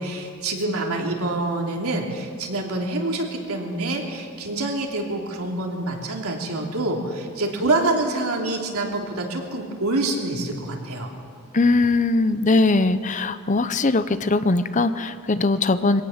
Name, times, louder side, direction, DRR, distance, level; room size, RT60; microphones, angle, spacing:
voice 1, 0.0-11.1, right 2 dB, 90° right, 0 dB, 3.2 m, -26 dB
voice 2, 11.5-16.0, left 3 dB, 35° left, 12 dB, 0.7 m, -20 dB
23.0 x 17.5 x 7.3 m, 2.2 s
head